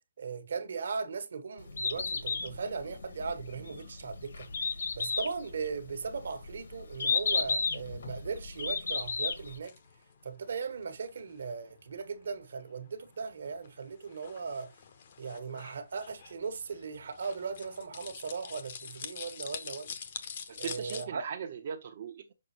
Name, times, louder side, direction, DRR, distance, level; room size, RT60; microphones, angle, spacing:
voice 1, 0.2-4.5 4.9-9.7 10.2-14.7 15.2-19.9 20.6-21.2, right 5 dB, 55° right, 1.3 m, -38 dB
Bird, 1.6-9.6, left 4 dB, 60° left, 1.5 m, -33 dB
sound 1, 9.4-21.1, left 7 dB, 35° left, 0.9 m, -46 dB
voice 2, 20.5-22.3, right 7 dB, 35° right, 0.8 m, -39 dB
6.5 x 5.1 x 2.9 m
hypercardioid pair, 170°, 0 cm